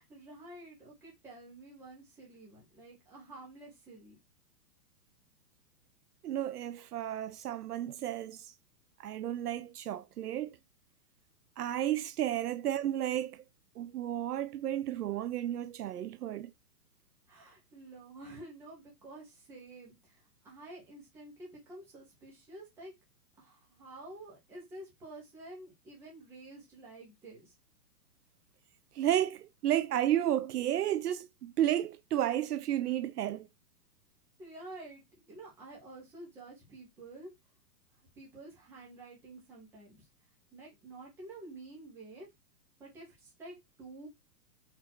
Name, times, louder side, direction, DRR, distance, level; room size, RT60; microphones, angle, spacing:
voice 1, 0.0-4.2 17.3-22.9 23.4-27.5 34.4-37.3 38.2-40.1 40.5-42.3 42.8-44.1, right 2 dB, 5° right, 0.9 m, -50 dB
voice 2, 6.2-8.5 9.0-10.6 11.6-13.4 13.8-16.5 28.9-33.5, right 12 dB, 70° right, 0.7 m, -32 dB
4.3 x 2.7 x 4.5 m
hypercardioid pair, 165°, 48 cm